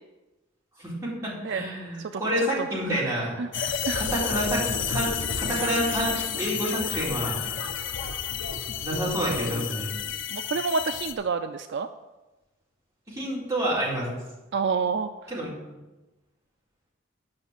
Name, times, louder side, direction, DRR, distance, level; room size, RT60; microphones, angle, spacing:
voice 1, 0.8-3.4 3.9-7.4 8.8-10.0 13.1-14.1 15.3-15.5, equal, 15° right, -7 dB, 4.1 m, -28 dB
voice 2, 2.1-3.1 3.4-4.0 10.3-11.9 14.5-15.1, right 5 dB, 60° right, 9 dB, 0.4 m, -29 dB
sound 1, 3.5-11.1, left 7 dB, 60° left, 0.9 m, -31 dB
10.5 x 5.9 x 7.4 m, 1.1 s
head